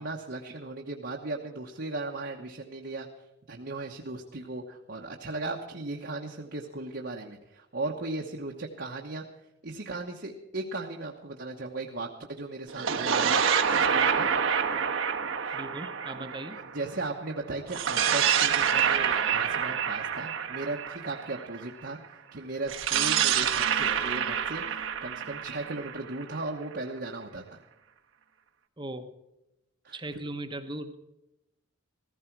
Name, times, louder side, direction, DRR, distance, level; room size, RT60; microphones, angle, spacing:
voice 1, 0.0-3.1 3.5-9.2 9.6-14.3 15.4-15.6 16.1-16.3 16.7-27.6 29.8-30.0, right 2 dB, 55° right, 0 dB, 1.1 m, -37 dB
sound 1, 12.7-17.1 17.7-21.6 22.7-26.5, right 7 dB, 75° right, 1.2 m, -27 dB
voice 2, 15.5-16.6 23.3-23.5 28.8-29.1 29.9-31.0, right 1 dB, 20° right, 8 dB, 1.0 m, -38 dB
15.0 x 15.0 x 4.6 m, 0.93 s
head